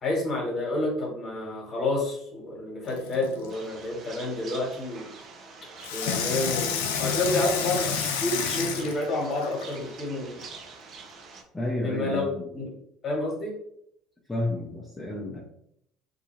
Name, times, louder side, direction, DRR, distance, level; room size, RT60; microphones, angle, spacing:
voice 1, 0.0-5.1 5.9-10.4 11.8-12.7 13.0-13.5, left 2 dB, 40° left, -1 dB, 1.2 m, -29 dB
Water tap faucet / Sink (filling or washing), 2.9-3.5 5.8-9.8 10.4-10.5, left 6 dB, 75° left, 0.4 m, -30 dB
sound 1, 3.5-11.4, right 4 dB, 50° right, 0.5 m, -46 dB
voice 2, 11.5-12.4 14.3-15.4, left 2 dB, 10° left, -4 dB, 0.6 m, -31 dB
2.7 x 2.3 x 3.0 m, 0.72 s
hypercardioid pair, 65°, 0 cm